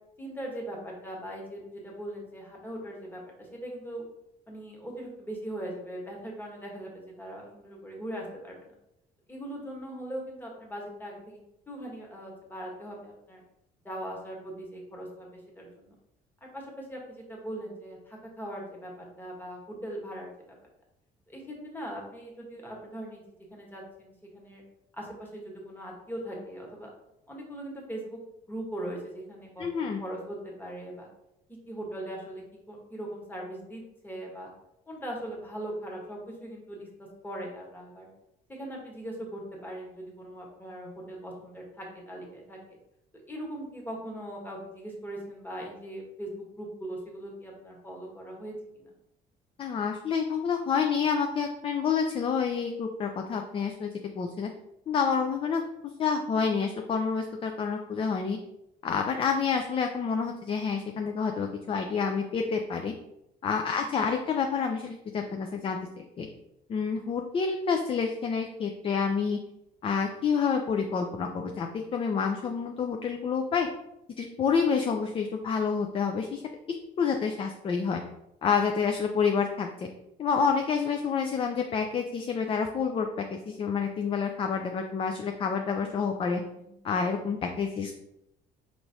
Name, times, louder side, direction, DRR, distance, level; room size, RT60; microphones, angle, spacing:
voice 1, 0.2-4.0 4.5-8.7 9.3-11.4 11.7-13.4 13.8-15.3 15.5-15.9 16.5-20.6 21.3-23.2 23.5-24.6 24.9-26.9 27.3-28.2 28.5-31.1 31.7-32.4 32.7-34.5 34.9-36.9 37.2-38.1 38.5-42.6 43.3-48.9 63.8-63.9 86.6-86.7, right 1 dB, 10° left, -1 dB, 1.2 m, -40 dB
voice 2, 29.6-30.0 49.6-54.5 54.9-55.6 56.0-58.4 58.8-62.9 63.4-66.3 66.7-69.4 69.8-73.7 74.2-76.4 77.0-78.0 78.4-79.9 80.2-86.4 86.8-87.9, left 6 dB, 30° left, 4 dB, 0.4 m, -28 dB
4.5 x 3.0 x 2.7 m, 0.83 s
cardioid pair, 110°, 17 cm